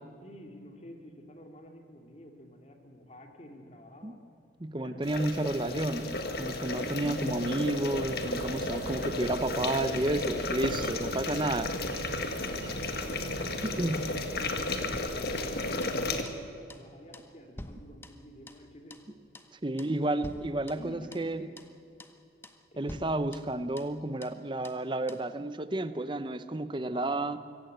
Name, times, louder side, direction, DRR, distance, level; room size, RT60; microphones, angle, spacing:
voice 1, 0.2-4.2 4.8-5.3 8.5-9.1 10.8-11.8 12.5-19.2 20.0-21.5 22.7-23.0 26.8-27.3, equal, 35° left, 3 dB, 2.6 m, -49 dB
voice 2, 4.6-11.7 13.4-14.1 19.6-21.5 22.8-27.4, right 1 dB, 25° right, 12 dB, 0.7 m, -31 dB
sound 1, 5.0-16.2, left 2 dB, 55° left, 1.8 m, -34 dB
sound 2, 8.0-15.0, right 3 dB, 60° right, 0.7 m, -43 dB
sound 3, 14.9-16.0 16.3-16.4 16.7-16.9 17.1-18.7 18.9-19.1 19.3-19.5 19.8-20.0 20.2-21.3 21.6-21.7 22.0-22.2 22.4-22.6 22.9-24.0 24.2-24.4 24.6-24.8 25.1-25.3, left 1 dB, 15° left, 0.9 m, -47 dB
25.0 x 16.0 x 7.9 m, 2.5 s
head